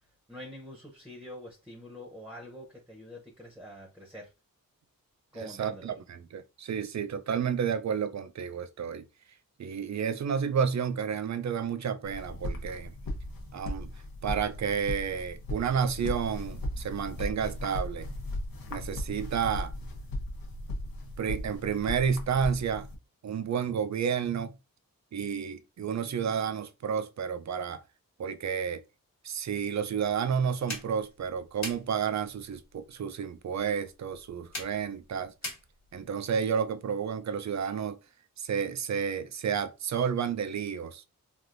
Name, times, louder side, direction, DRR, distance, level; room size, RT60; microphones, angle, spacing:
voice 1, 0.3-4.3 5.3-5.9, equal, 5° right, 0.8 m, -45 dB
voice 2, 5.3-9.0 9.6-12.9 13.5-13.9 14.2-18.1 18.7-19.7 21.2-22.9 23.2-24.5 25.1-27.8 28.2-28.8 29.2-35.3 35.9-38.0 38.4-41.0, right 7 dB, 50° right, 0.4 m, -31 dB
sound 1, 12.0-23.0, left 1 dB, 75° left, 0.8 m, -37 dB
sound 2, 30.7-36.1, left 2 dB, 50° left, 1.2 m, -44 dB
3.3 x 2.5 x 2.5 m
wide cardioid pair, 65°, 35 cm